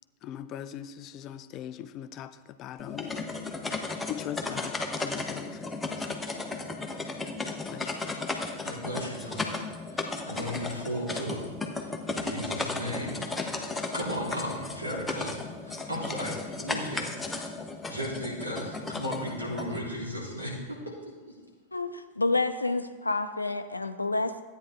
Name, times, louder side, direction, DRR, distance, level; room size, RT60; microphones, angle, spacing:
voice 1, 0.2-3.2 4.1-6.3 7.5-8.3, left 10 dB, 35° left, 12 dB, 0.5 m, -41 dB
sound 1, 2.8-19.8, left 3 dB, 10° left, 1.0 m, -35 dB
voice 2, 8.6-9.6 9.9-17.5 17.9-21.4, equal, 85° right, -6 dB, 3.8 m, -36 dB
voice 3, 21.7-24.4, left 3 dB, 80° left, 9 dB, 0.6 m, -29 dB
13.5 x 9.2 x 3.7 m, 1.3 s
figure-of-eight pair, 90°, 0 cm